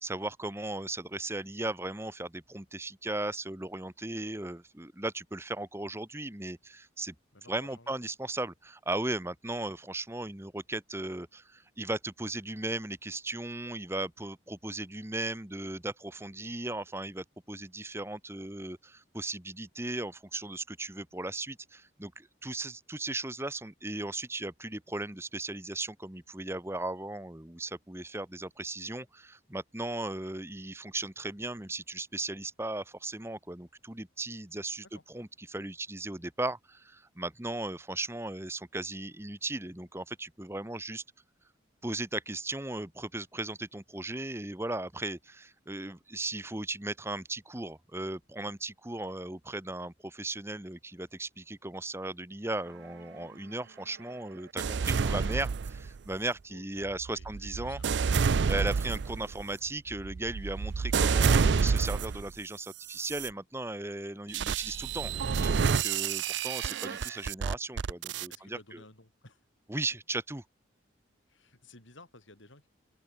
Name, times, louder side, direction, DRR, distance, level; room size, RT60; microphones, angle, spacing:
voice 1, 0.0-7.1 7.5-41.0 41.8-57.8 58.1-68.8 69.7-70.4, right 2 dB, 15° right, 1.1 m, -37 dB
voice 2, 7.3-8.0 34.8-35.0 56.5-57.9 68.3-69.4 71.3-72.7, left 2 dB, 75° left, 6.3 m, -55 dB
sound 1, 54.6-56.1 56.8-62.3 62.9-63.3 64.3-68.4, right 5 dB, 65° right, 0.4 m, -29 dB
head